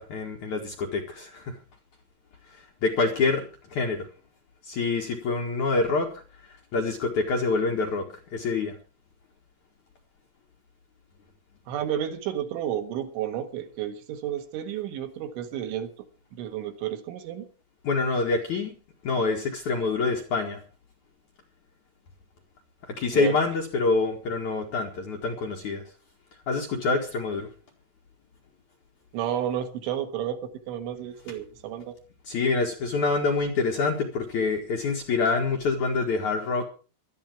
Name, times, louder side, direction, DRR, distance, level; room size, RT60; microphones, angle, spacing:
voice 1, 0.0-1.6 2.8-3.4 3.7-4.1 4.6-6.1 6.7-8.7 17.8-18.8 19.0-20.6 22.9-25.8 26.5-27.5 32.3-36.6, left 4 dB, 55° left, 1 dB, 2.4 m, -26 dB
voice 2, 11.7-15.9 16.4-17.5 23.1-23.4 29.1-32.0, right 10 dB, 75° right, 6 dB, 3.8 m, -31 dB
17.5 x 12.5 x 4.7 m, 0.35 s
omnidirectional pair, 5.6 m